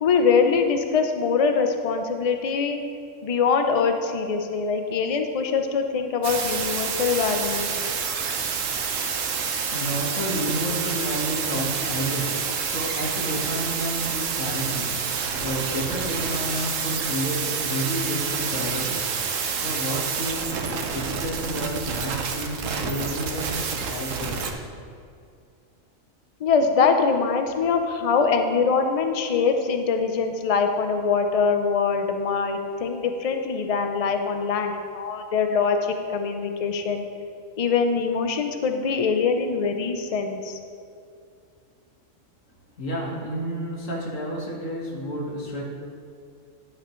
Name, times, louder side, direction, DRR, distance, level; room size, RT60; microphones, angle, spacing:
voice 1, 0.0-2.8 3.2-7.8 26.4-37.0 37.6-40.6, left 5 dB, 45° left, 5 dB, 0.5 m, -23 dB
sound 1, 6.2-24.5, right 6 dB, 75° right, 1.1 m, -28 dB
voice 2, 9.3-15.1 15.4-20.5 20.9-23.6 23.9-24.4 42.8-45.6, equal, 70° left, -3 dB, 2.0 m, -30 dB
10.5 x 8.4 x 3.1 m, 2.4 s
omnidirectional pair, 1.4 m